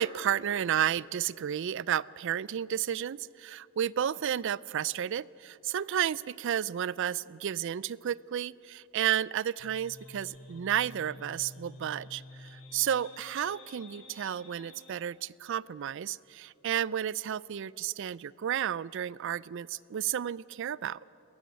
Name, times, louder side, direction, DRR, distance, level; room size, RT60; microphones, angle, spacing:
voice 1, 0.0-21.0, right 10 dB, 60° right, 22 dB, 0.4 m, -32 dB
sound 1, 9.6-15.0, left 2 dB, 85° left, 3.1 m, -50 dB
22.0 x 14.0 x 9.1 m, 2.9 s
head